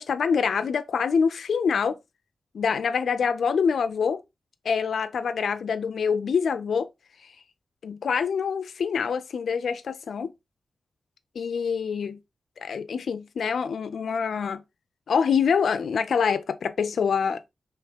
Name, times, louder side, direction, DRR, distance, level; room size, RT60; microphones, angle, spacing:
voice 1, 0.0-2.0 2.5-4.2 4.7-6.9 7.8-10.3 11.4-12.2 12.6-14.6 15.1-17.4, left 6 dB, 85° left, 0.4 m, -25 dB
3.5 x 3.1 x 3.4 m
wide cardioid pair, 125°, 0 cm